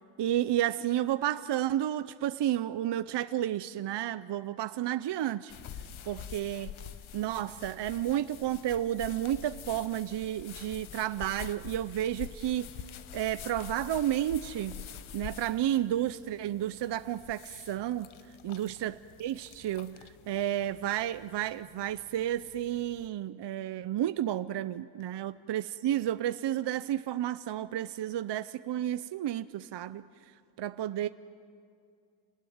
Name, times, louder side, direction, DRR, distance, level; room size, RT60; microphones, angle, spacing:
voice 1, 0.2-5.5 6.1-6.7 7.1-12.7 13.1-14.8 15.1-18.1 18.4-20.0 20.3-30.0 30.6-31.1, right 12 dB, 60° right, 13 dB, 0.6 m, -31 dB
sound 1, 5.5-23.1, left 9 dB, 75° left, 1.0 m, -47 dB
28.0 x 19.5 x 9.4 m, 2.4 s
wide cardioid pair, 135°, 48 cm